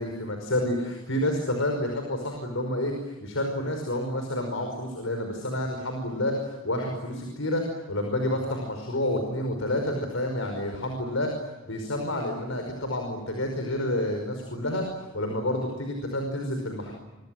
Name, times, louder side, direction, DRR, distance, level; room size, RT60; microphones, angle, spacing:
voice 1, 0.0-11.3 11.7-16.9, left 1 dB, 80° left, 3 dB, 5.3 m, -29 dB
27.5 x 25.5 x 7.8 m, 1.1 s
head